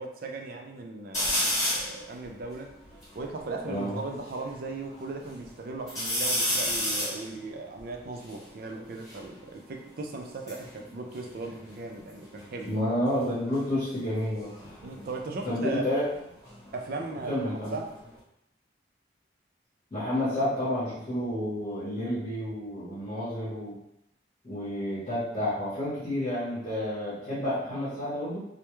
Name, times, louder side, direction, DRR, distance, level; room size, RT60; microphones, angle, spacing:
voice 1, 0.0-2.7 3.2-12.7 14.8-15.8 16.7-17.9, right 3 dB, 50° right, 2 dB, 0.3 m, -37 dB
sound 1, 1.1-2.0 2.5-2.6 2.8-4.4 4.9-5.5 5.9-9.3 10.2-12.1 12.4-12.9 14.4-17.1 17.4-18.2, left 1 dB, 15° left, 1.1 m, -32 dB
voice 2, 3.7-4.0 12.6-14.5 15.4-16.0 17.3-17.8 19.9-23.8 24.4-28.4, left 1 dB, 35° left, -9 dB, 0.9 m, -30 dB
2.2 x 2.1 x 2.9 m, 0.81 s
head